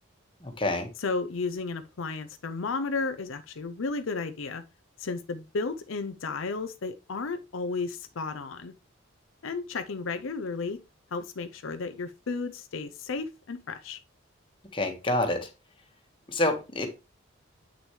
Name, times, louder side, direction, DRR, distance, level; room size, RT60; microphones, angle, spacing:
voice 1, 0.4-0.9 14.7-15.5 16.3-16.9, left 1 dB, 25° left, 1.5 m, -27 dB
voice 2, 1.0-4.6 5.0-8.7 9.4-10.8 11.1-14.0, left 4 dB, 75° left, 0.6 m, -33 dB
8.3 x 6.2 x 3.2 m
head